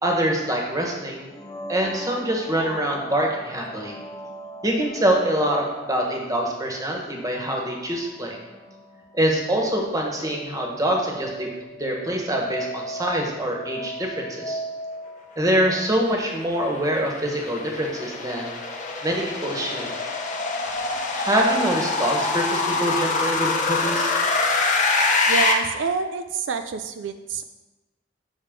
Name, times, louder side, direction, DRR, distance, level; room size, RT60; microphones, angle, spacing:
voice 1, 0.0-1.3 1.7-4.0 4.6-8.4 9.1-11.5 11.8-14.6 15.4-18.5 19.0-19.9 21.1-24.1, right 1 dB, 20° right, 0 dB, 1.2 m, -25 dB
sound 1, 1.2-16.9, right 1 dB, 20° left, 0.4 m, -39 dB
sound 2, 16.0-25.5, left 3 dB, 45° left, 1.0 m, -25 dB
voice 2, 25.3-27.4, right 5 dB, 80° right, 8 dB, 0.4 m, -27 dB
7.4 x 6.0 x 3.7 m, 1.1 s
head